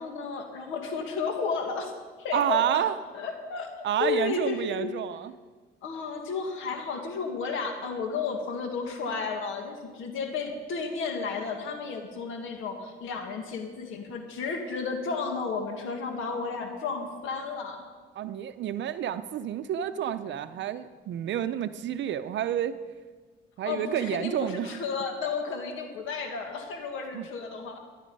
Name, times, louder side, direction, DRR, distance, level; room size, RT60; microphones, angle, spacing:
voice 1, 0.0-1.9 2.2-2.9 3.1-3.7 4.0-4.9 5.8-17.9 23.6-27.8, left 5 dB, 85° left, 5 dB, 1.7 m, -32 dB
voice 2, 2.3-2.9 3.8-5.3 18.2-22.7 23.6-24.8 27.1-27.3, right 10 dB, 65° right, 11 dB, 0.6 m, -29 dB
13.5 x 11.0 x 5.4 m, 1.4 s
cardioid pair, 90°, 20 cm